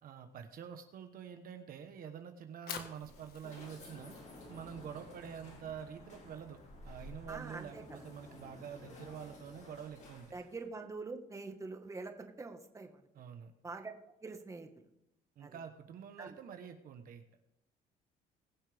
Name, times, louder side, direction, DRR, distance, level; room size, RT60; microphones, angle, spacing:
voice 1, 0.0-4.1 4.5-6.6 6.8-10.3 13.1-13.5 15.4-17.2, right 8 dB, 60° right, 7 dB, 1.2 m, -47 dB
Fire, 2.4-8.6, left 7 dB, 65° left, 1.6 m, -52 dB
sound 1, 2.9-10.6, left 2 dB, 45° left, 4.6 m, -53 dB
voice 2, 7.3-7.8 10.3-13.0 13.6-13.9 14.2-14.8 15.4-15.6 16.2-16.4, right 3 dB, 20° right, 5 dB, 1.6 m, -45 dB
21.5 x 7.2 x 3.5 m, 0.84 s
cardioid pair, 110°, 17 cm